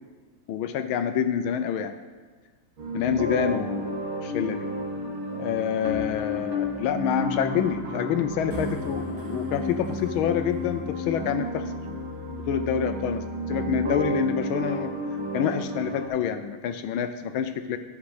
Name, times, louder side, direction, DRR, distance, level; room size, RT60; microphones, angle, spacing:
voice 1, 0.5-1.9 2.9-4.0 4.2-4.7 5.3-11.7 12.5-15.0 15.3-17.8, left 8 dB, 75° left, 9 dB, 1.3 m, -27 dB
sound 1, 2.8-16.1, equal, 65° right, 2.1 m, -32 dB
12.0 x 7.3 x 4.9 m, 1.4 s
omnidirectional pair, 2.4 m